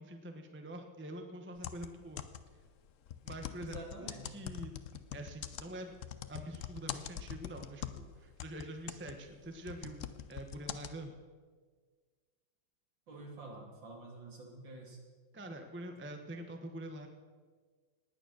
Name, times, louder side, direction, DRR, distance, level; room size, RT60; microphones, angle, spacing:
voice 1, 0.0-2.2 3.2-5.9 6.3-10.0 10.3-11.2 15.3-17.1, right 1 dB, 10° right, 5 dB, 0.8 m, -45 dB
sound 1, 1.6-2.6 3.1-8.1 8.4-10.9, left 9 dB, 75° left, 0.7 m, -43 dB
voice 2, 3.6-4.4 13.1-15.0, right 2 dB, 65° right, 0 dB, 3.3 m, -48 dB
19.0 x 9.2 x 6.2 m, 1.5 s
omnidirectional pair, 2.2 m